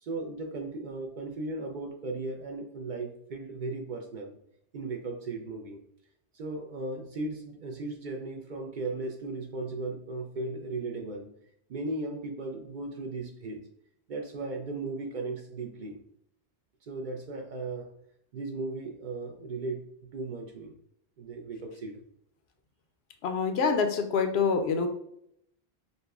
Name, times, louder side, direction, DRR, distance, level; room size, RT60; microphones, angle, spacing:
voice 1, 0.0-4.4 4.7-5.8 6.3-11.3 11.7-13.6 14.1-16.0 16.8-17.9 18.3-19.8 20.1-20.7 21.2-22.0, right 2 dB, 55° right, 2 dB, 0.6 m, -36 dB
voice 2, 23.2-24.9, left 5 dB, 75° left, 6 dB, 0.8 m, -26 dB
5.1 x 2.1 x 2.4 m, 0.73 s
omnidirectional pair, 1.1 m